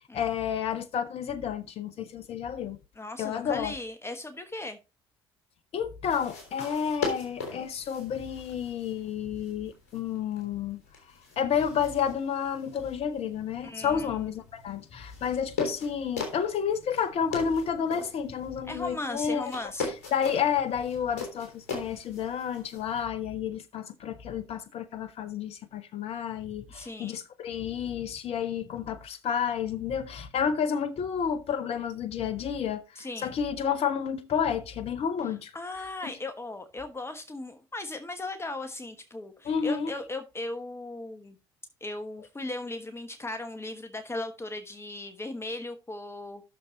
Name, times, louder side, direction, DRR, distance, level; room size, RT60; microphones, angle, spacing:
voice 1, 0.0-2.8 3.2-3.7 5.7-10.8 11.4-19.5 20.1-35.5 39.4-39.9, left 7 dB, 45° left, 0.8 m, -30 dB
voice 2, 2.9-4.8 13.6-14.3 18.6-19.9 26.7-27.2 32.9-33.3 35.3-41.4 41.8-46.4, left 2 dB, 20° left, 1.2 m, -37 dB
sound 1, 6.0-23.1, left 4 dB, 65° left, 3.4 m, -40 dB
13.0 x 6.6 x 2.9 m
figure-of-eight pair, 50°, 14 cm